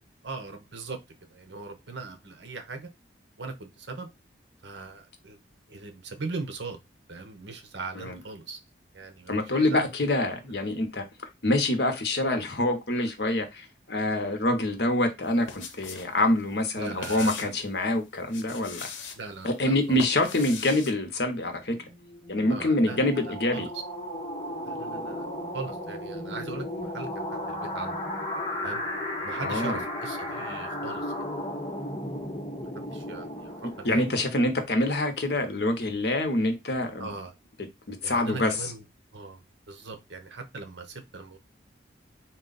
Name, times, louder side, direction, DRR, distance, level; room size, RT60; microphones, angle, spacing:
voice 1, 0.2-1.0 1.3-2.9 3.4-4.1 4.6-5.4 5.7-6.8 7.1-8.6 8.9-9.9 16.7-17.5 19.2-20.0 22.5-23.7 24.6-25.3 25.5-28.1 28.6-28.8 29.2-31.1 32.7-34.1 37.0-37.3 38.0-38.8 39.1-41.4, right 3 dB, 75° right, 0.9 m, -39 dB
voice 2, 9.3-11.0 11.4-18.9 19.4-21.8 22.3-23.7 29.4-29.8 33.8-37.1 37.9-38.6, left 1 dB, 60° left, 0.9 m, -26 dB
sound 1, 15.2-16.1 16.4-17.6 18.2-19.2 19.7-20.9, left 6 dB, 85° left, 0.7 m, -40 dB
sound 2, 21.7-34.4, left 1 dB, 35° left, 1.1 m, -35 dB
3.9 x 2.4 x 3.9 m
head